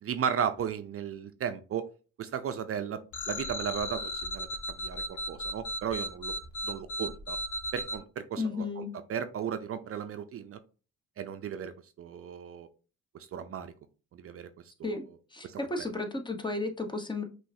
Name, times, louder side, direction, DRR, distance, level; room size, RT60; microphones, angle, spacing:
voice 1, 0.0-1.8 2.2-3.0 3.3-6.3 6.6-7.4 7.7-8.8 9.1-10.6 11.2-11.7 12.0-12.7 13.3-13.7 14.1-14.5 14.8-15.0 15.4-15.9, right 8 dB, 50° right, 10 dB, 0.5 m, -35 dB
sound 1, 3.1-8.0, equal, 75° left, 1.3 m, -36 dB
voice 2, 8.4-8.9 14.8-15.0 15.3-17.2, left 3 dB, 15° left, 5 dB, 0.9 m, -33 dB
5.5 x 3.1 x 2.7 m, 0.35 s
cardioid pair, 90°, 30 cm